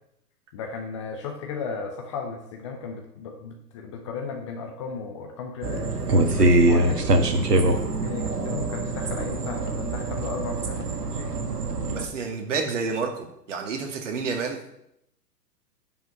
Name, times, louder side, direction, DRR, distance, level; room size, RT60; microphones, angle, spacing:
voice 1, 0.5-7.1 7.6-11.4, left 5 dB, 20° left, 3 dB, 0.7 m, -35 dB
sound 1, 5.6-12.1, right 2 dB, 70° right, 1.6 m, -23 dB
voice 2, 11.9-14.6, right 5 dB, 45° right, 3 dB, 2.3 m, -29 dB
10.5 x 5.7 x 7.5 m, 0.79 s
figure-of-eight pair, 120°, 50 cm